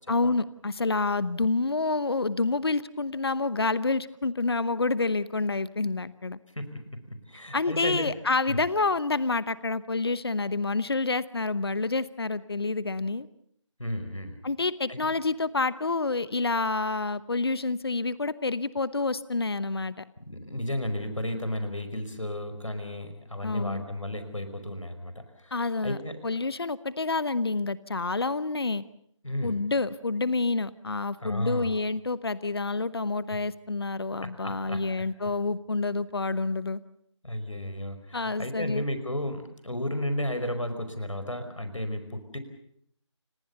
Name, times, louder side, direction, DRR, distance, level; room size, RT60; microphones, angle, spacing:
voice 1, 0.1-6.4 7.5-13.3 14.4-19.9 23.4-23.8 25.5-26.0 26.2-28.8 29.4-36.8 38.1-38.8, left 3 dB, 50° left, 17 dB, 1.0 m, -28 dB
voice 2, 6.5-8.1 8.5-8.6 13.8-14.4 14.9-15.0 20.2-26.2 29.2-29.6 31.2-31.7 33.3-33.4 34.2-34.8 37.2-42.4, left 1 dB, 80° left, 9 dB, 5.0 m, -33 dB
29.5 x 19.0 x 6.9 m, 0.72 s
figure-of-eight pair, 160°, 16 cm